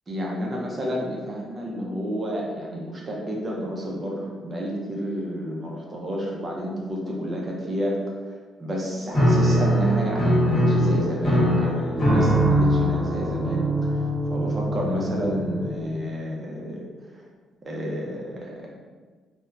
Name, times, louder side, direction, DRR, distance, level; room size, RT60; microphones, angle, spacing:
voice 1, 0.1-8.0 8.3-17.2 17.6-18.8, equal, 35° right, -2 dB, 0.5 m, -30 dB
Piano, 9.1-15.9, equal, 35° left, 1.1 m, -22 dB
2.8 x 2.1 x 2.3 m, 1.4 s
cardioid pair, 90°, 0 cm